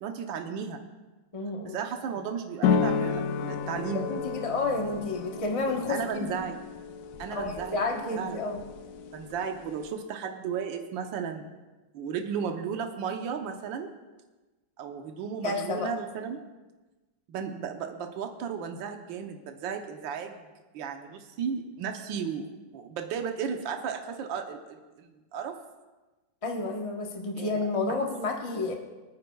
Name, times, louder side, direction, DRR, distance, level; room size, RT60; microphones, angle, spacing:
voice 1, 0.0-0.8 1.6-4.1 5.9-6.6 7.2-7.8 8.1-8.4 9.1-11.5 11.9-13.9 14.8-16.4 17.3-20.4 20.7-25.5 27.3-27.6 27.9-28.0, right 7 dB, 80° right, 4 dB, 1.6 m, -34 dB
voice 2, 1.3-1.8 4.1-6.5 7.3-8.6 15.4-15.9 26.4-28.7, left 3 dB, 25° left, 1 dB, 0.8 m, -30 dB
sound 1, 2.6-9.9, left 6 dB, 80° left, 0.7 m, -32 dB
24.5 x 9.7 x 2.3 m, 1.2 s
omnidirectional pair, 2.1 m